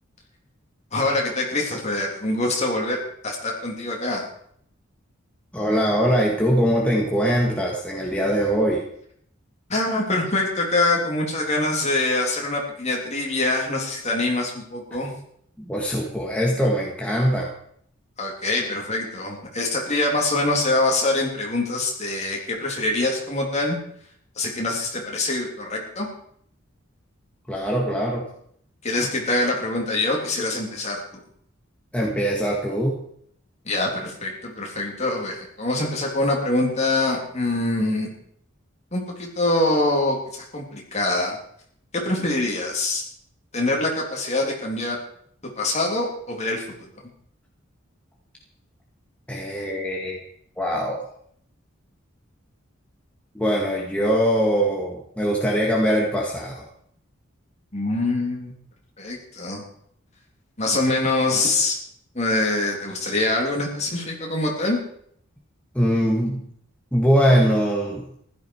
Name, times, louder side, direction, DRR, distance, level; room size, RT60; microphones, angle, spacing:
voice 1, 0.9-4.3 9.7-15.1 18.2-23.8 24.4-26.1 28.8-31.0 33.7-38.1 38.9-41.4 41.9-43.0 43.5-45.0 45.6-46.7 57.7-58.5 59.0-59.6 60.6-61.8 62.1-64.8, left 2 dB, 35° left, -1 dB, 3.5 m, -24 dB
voice 2, 5.5-8.8 15.6-17.5 27.5-28.3 31.9-33.0 49.3-50.2 50.6-51.0 53.3-56.6 65.7-66.4 66.9-68.1, equal, 5° left, -3 dB, 1.9 m, -22 dB
15.5 x 12.0 x 4.9 m, 0.66 s
head